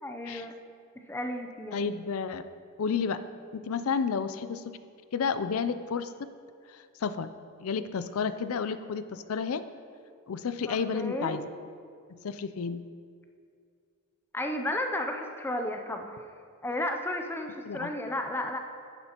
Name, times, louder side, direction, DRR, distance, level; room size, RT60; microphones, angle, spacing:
voice 1, 0.0-0.5 1.1-1.9 10.7-11.4 14.3-16.3 16.6-18.6, left 1 dB, 10° left, 4 dB, 0.5 m, -33 dB
voice 2, 1.7-2.4 2.8-3.2 3.6-4.6 5.1-6.1 6.7-7.3 7.6-9.6 10.3-11.4 12.2-12.8 17.7-17.9, left 6 dB, 70° left, 12 dB, 0.4 m, -31 dB
11.0 x 9.7 x 2.9 m, 2.2 s
head